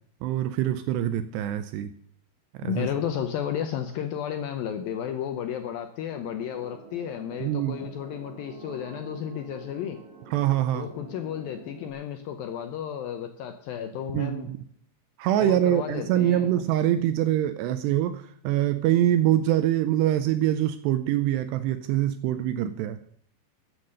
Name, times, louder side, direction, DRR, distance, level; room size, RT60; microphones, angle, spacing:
voice 1, 0.2-1.9 2.6-2.9 7.4-7.8 10.3-10.9 14.1-14.6 15.2-23.1, right 12 dB, 80° right, 11 dB, 2.6 m, -24 dB
voice 2, 2.6-10.0 10.7-14.5 15.4-16.5, left 9 dB, 85° left, 6 dB, 2.1 m, -33 dB
sound 1, 6.1-11.9, right 3 dB, 45° right, 2.2 m, -47 dB
14.0 x 8.0 x 6.5 m, 0.64 s
omnidirectional pair, 5.2 m